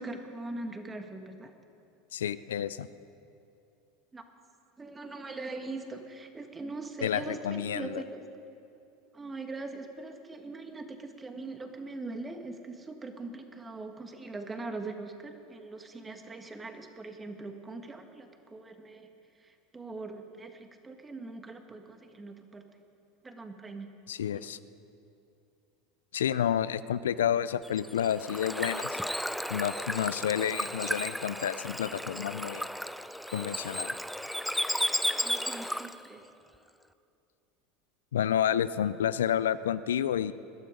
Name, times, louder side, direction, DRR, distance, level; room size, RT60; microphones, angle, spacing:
voice 1, 0.0-1.5 4.1-4.2 4.8-8.2 9.1-19.1 19.4-22.6 23.2-23.9 24.3-24.5 35.2-36.2, right 3 dB, 20° right, 6 dB, 1.6 m, -41 dB
voice 2, 2.1-2.9 7.0-8.0 24.1-24.6 26.1-29.0 29.5-32.7 33.3-34.0 38.1-40.3, left 9 dB, 85° left, 16 dB, 0.4 m, -30 dB
Bird / Water, 27.6-36.1, equal, ahead, 0.5 m, -34 dB
21.0 x 12.0 x 5.1 m, 2.7 s
hypercardioid pair, 90°, 0 cm